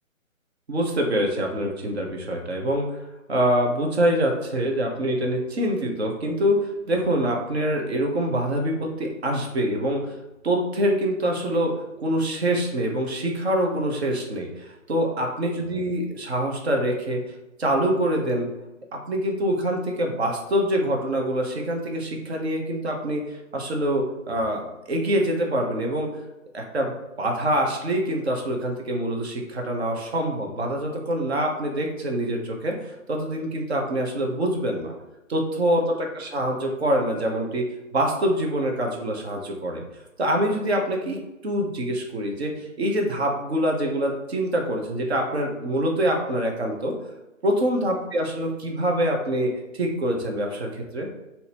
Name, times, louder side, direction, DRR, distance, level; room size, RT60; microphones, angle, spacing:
voice 1, 0.7-3.0 3.3-10.2 10.4-11.7 12.0-17.2 17.6-18.5 18.9-26.2 26.5-34.9 35.3-37.6 37.9-39.8 40.2-46.9 47.4-51.1, right 1 dB, 50° right, 1 dB, 0.9 m, -25 dB
3.9 x 2.8 x 2.9 m, 0.99 s
figure-of-eight pair, 145°, 40 cm